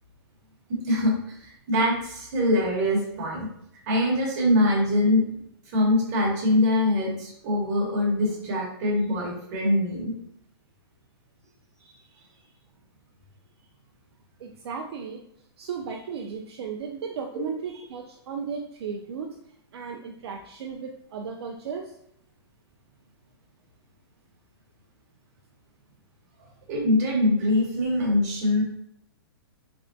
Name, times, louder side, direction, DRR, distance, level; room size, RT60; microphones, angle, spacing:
voice 1, 0.7-3.5 3.9-5.2 5.7-10.1 26.7-28.6, left 1 dB, 40° right, -3 dB, 1.1 m, -23 dB
voice 2, 14.4-15.2 15.6-19.4 19.7-21.9, right 6 dB, 70° right, 2 dB, 0.4 m, -35 dB
3.4 x 2.1 x 2.6 m, 0.74 s
hypercardioid pair, 155°, 14 cm